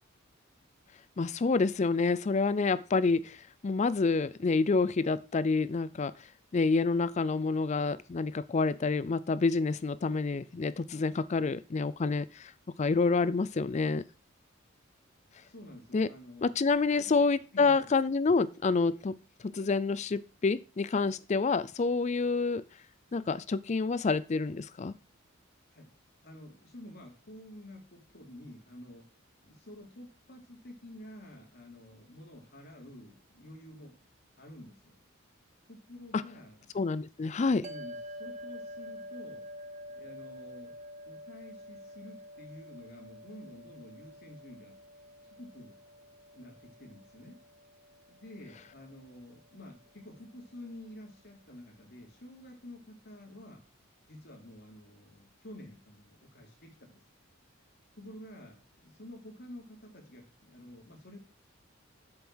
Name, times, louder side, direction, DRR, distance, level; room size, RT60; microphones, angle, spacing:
voice 1, 1.2-6.1 6.5-12.5 12.8-14.0 15.9-16.1 16.4-19.2 19.4-22.6 23.1-24.9 36.1-36.2 36.7-37.6, left 4 dB, 35° left, 18 dB, 0.4 m, -28 dB
voice 2, 15.4-16.6 16.9-17.2 17.5-17.9 25.7-25.9 26.2-29.0 29.4-34.0 34.3-35.0 35.7-36.7 37.4-39.4 40.0-40.8 41.1-44.8 45.3-45.8 46.3-47.4 48.1-53.6 54.1-57.0 57.9-61.2, left 1 dB, 50° left, 1 dB, 3.2 m, -50 dB
sound 1, 37.6-50.1, equal, 35° right, 0.9 m, -48 dB
7.9 x 7.0 x 6.2 m, 0.34 s
head